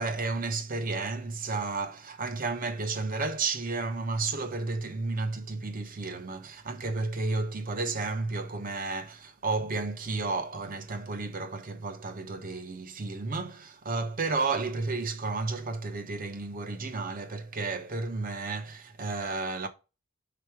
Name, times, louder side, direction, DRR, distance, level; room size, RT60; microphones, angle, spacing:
voice 1, 0.0-19.7, right 3 dB, 40° right, 0.7 m, -32 dB
5.1 x 4.3 x 4.6 m
head